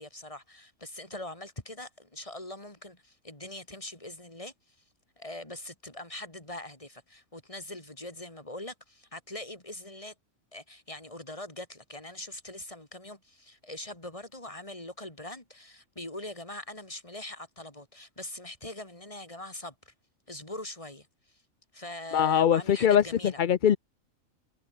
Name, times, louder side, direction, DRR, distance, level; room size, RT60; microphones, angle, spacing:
voice 1, 0.0-4.5 5.2-10.1 10.5-19.9 20.3-21.1 21.7-23.4, left 1 dB, 25° left, 3.9 m, -42 dB
voice 2, 22.1-23.8, left 9 dB, 50° left, 0.6 m, -22 dB
omnidirectional pair, 1.4 m